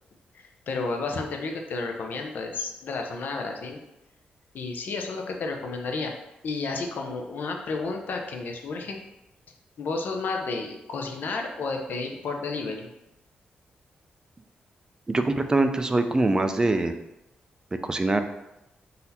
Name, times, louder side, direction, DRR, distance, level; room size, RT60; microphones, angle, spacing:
voice 1, 0.7-3.8 4.5-6.1 6.4-9.0 9.8-12.9, left 3 dB, 70° left, 3 dB, 0.7 m, -31 dB
voice 2, 15.1-17.0 17.8-18.2, right 2 dB, 20° right, 7 dB, 0.4 m, -23 dB
4.0 x 2.7 x 4.1 m, 0.91 s
cardioid pair, 100°, 3 cm